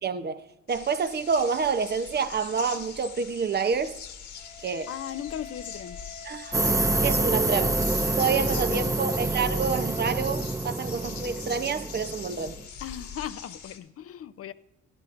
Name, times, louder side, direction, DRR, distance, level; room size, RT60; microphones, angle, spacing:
voice 1, 0.0-0.4 0.7-4.0 4.6-4.9 6.3-6.7 7.0-7.8 8.2-12.6, right 5 dB, 35° right, 0.7 m, -28 dB
sound 1, 0.7-13.8, left 7 dB, 75° left, 1.7 m, -43 dB
Wind instrument woodwind instrument, 4.4-10.5, left 5 dB, 20° left, 0.9 m, -49 dB
voice 2, 4.9-6.0 8.2-8.9 12.8-14.5, left 10 dB, 50° left, 0.6 m, -38 dB
sound 2, 6.5-12.6, right 2 dB, 10° right, 0.4 m, -27 dB
16.0 x 11.5 x 2.5 m
cardioid pair, 90°, 30 cm